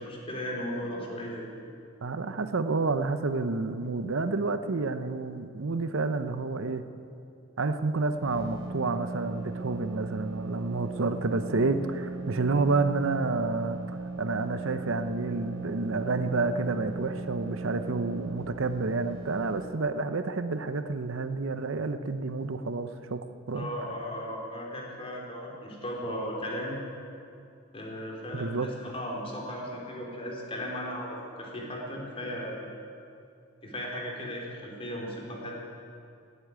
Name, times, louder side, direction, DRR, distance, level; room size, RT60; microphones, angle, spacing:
voice 1, 0.0-1.5 23.5-26.8 27.7-31.1 31.4-32.6 33.6-35.6, equal, 25° left, -2 dB, 3.2 m, -36 dB
voice 2, 2.0-6.8 7.6-13.8 14.2-23.7 28.3-28.7, right 3 dB, 70° right, 10 dB, 0.8 m, -29 dB
sound 1, 8.0-19.7, right 3 dB, 85° right, 4.0 m, -38 dB
18.0 x 8.4 x 9.6 m, 2.6 s
head